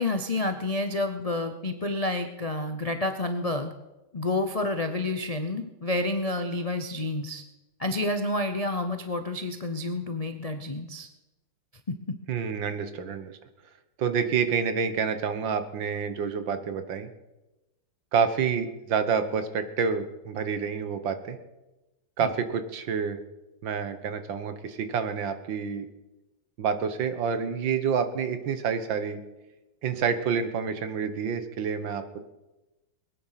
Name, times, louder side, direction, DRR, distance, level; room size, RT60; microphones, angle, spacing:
voice 1, 0.0-3.7 4.1-7.4 7.8-11.1 11.9-12.0 22.2-22.3, left 2 dB, 45° left, 6 dB, 0.5 m, -29 dB
voice 2, 12.3-13.3 14.0-17.1 18.1-21.4 22.2-23.2 23.6-25.9 26.6-29.2 29.8-32.3, right 6 dB, 75° right, 10 dB, 1.9 m, -28 dB
21.5 x 9.5 x 5.8 m, 1.0 s
omnidirectional pair, 2.1 m